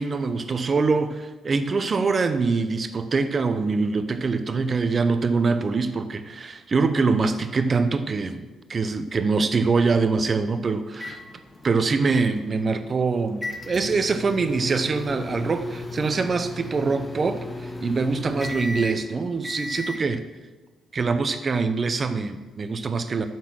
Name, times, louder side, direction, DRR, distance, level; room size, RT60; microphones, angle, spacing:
voice 1, 0.0-11.2 11.6-20.2 20.9-23.3, right 4 dB, 40° right, 10 dB, 0.7 m, -24 dB
sound 1, 10.9-20.0, left 2 dB, 15° left, 0.9 m, -36 dB
8.1 x 4.1 x 6.4 m, 1.3 s
cardioid pair, 90°, 0 cm